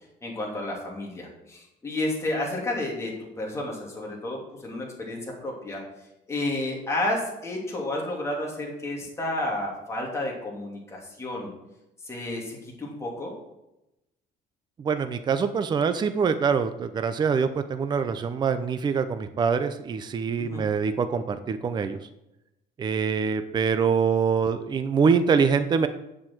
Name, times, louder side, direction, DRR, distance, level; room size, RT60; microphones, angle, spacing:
voice 1, 0.2-5.8 6.3-11.5 12.0-13.3 20.4-20.7, left 1 dB, 15° left, -2 dB, 2.9 m, -31 dB
voice 2, 14.8-22.0 22.8-25.9, right 6 dB, 25° right, 10 dB, 0.6 m, -24 dB
8.5 x 7.4 x 7.7 m, 0.91 s
cardioid pair, 170°, 18 cm